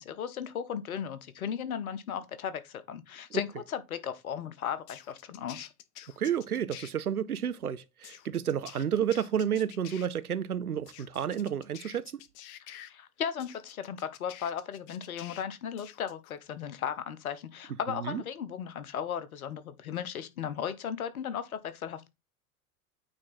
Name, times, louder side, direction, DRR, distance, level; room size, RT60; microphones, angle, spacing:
voice 1, 0.0-5.7 12.7-22.1, left 8 dB, 70° left, 1.1 m, -36 dB
sound 1, 4.9-6.9 8.0-10.1 10.9-12.9 13.4-15.4 15.8-16.3, left 12 dB, 45° left, 0.9 m, -49 dB
voice 2, 6.2-12.2 17.9-18.2, right 9 dB, 90° right, 0.5 m, -31 dB
8.9 x 3.6 x 4.1 m
figure-of-eight pair, 75°, 43 cm